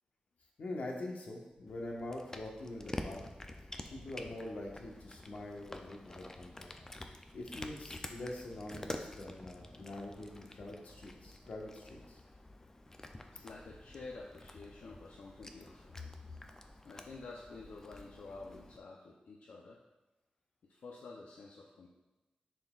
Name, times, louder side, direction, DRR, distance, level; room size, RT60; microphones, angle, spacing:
voice 1, 0.6-3.2 3.9-6.7 7.3-12.2, left 1 dB, 70° left, -1 dB, 1.3 m, -44 dB
Cat, 1.7-18.8, left 1 dB, 20° left, 0.5 m, -49 dB
voice 2, 13.3-16.3 16.8-19.8 20.7-21.9, left 3 dB, 85° left, -2 dB, 0.7 m, -49 dB
10.5 x 4.3 x 2.4 m, 1.1 s
wide cardioid pair, 120°, 3 cm